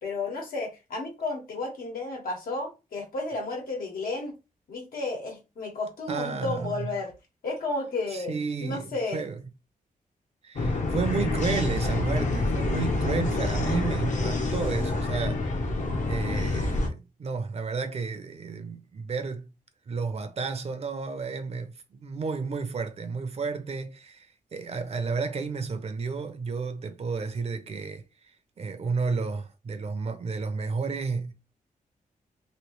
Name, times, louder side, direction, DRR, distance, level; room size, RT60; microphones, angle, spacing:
voice 1, 0.0-4.4 4.7-7.1 7.4-8.3 8.6-9.2, left 3 dB, 85° left, 1.4 m, -32 dB
voice 2, 6.1-6.9 8.1-9.4 10.4-15.6 16.1-19.5 19.9-31.3, right 4 dB, 45° right, 0.6 m, -32 dB
sound 1, 10.6-16.9, left 2 dB, 55° left, 0.8 m, -27 dB
3.1 x 2.8 x 3.0 m
wide cardioid pair, 135°, 15 cm